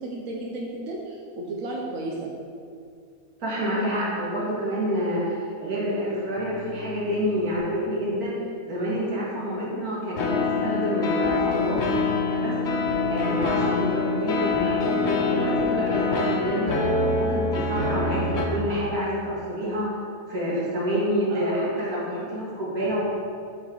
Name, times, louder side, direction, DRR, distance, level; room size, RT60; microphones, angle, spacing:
voice 1, 0.0-2.3 21.3-21.7, right 2 dB, 70° right, -2 dB, 1.2 m, -33 dB
voice 2, 3.4-8.3 8.6-11.8 12.3-12.5 13.1-16.8 17.2-19.9 20.3-23.0, equal, 90° right, -7 dB, 2.5 m, -28 dB
sound 1, 6.4-7.5 10.2-18.5, left 3 dB, 55° left, 1.0 m, -25 dB
7.7 x 6.0 x 3.9 m, 2.3 s
omnidirectional pair, 1.5 m